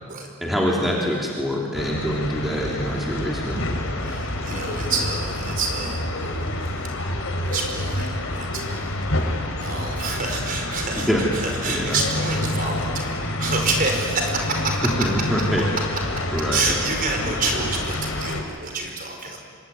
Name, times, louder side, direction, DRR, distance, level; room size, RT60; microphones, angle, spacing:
voice 1, 0.4-3.7 11.1-11.2 11.7-12.0 15.0-15.7 16.3-16.6, equal, ahead, -4 dB, 3.2 m, -24 dB
sound 1, 1.7-18.4, left 1 dB, 65° left, 3.8 m, -28 dB
voice 2, 4.0-6.9 7.2-14.8 15.4-15.5 16.5-19.4, right 3 dB, 40° right, 2 dB, 5.2 m, -28 dB
25.0 x 25.0 x 9.6 m, 2.1 s
head